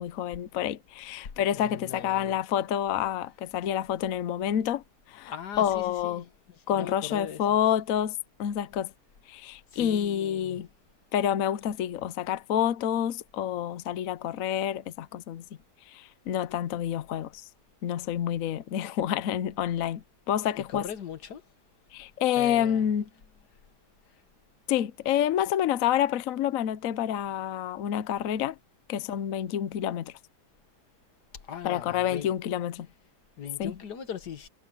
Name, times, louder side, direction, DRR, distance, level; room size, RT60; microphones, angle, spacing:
voice 1, 0.0-4.8 5.1-6.2 6.7-8.9 9.3-10.7 11.1-15.4 15.9-17.5 17.8-20.8 21.9-23.0 24.7-28.6 28.9-30.1 31.6-32.9 33.6-33.7, left 10 dB, 65° left, 1.0 m, -28 dB
voice 2, 1.5-2.4 5.3-6.3 6.7-7.5 9.7-10.6 20.5-21.4 22.4-22.9 31.4-32.3 33.4-34.5, left 8 dB, 85° left, 2.0 m, -39 dB
omnidirectional pair, 1.7 m